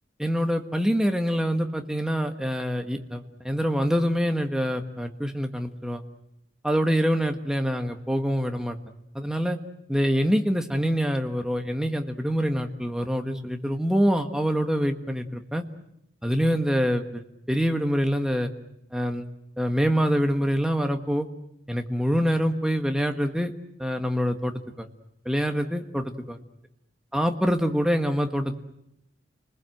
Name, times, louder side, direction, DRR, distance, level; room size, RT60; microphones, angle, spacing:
voice 1, 0.2-6.0 6.6-8.8 9.1-9.6 9.9-15.6 16.2-18.5 18.9-19.2 19.6-21.3 21.7-23.5 23.8-24.9 25.2-26.4 27.1-28.6, equal, 5° right, 5 dB, 1.5 m, -25 dB
30.0 x 20.5 x 7.9 m, 0.81 s
head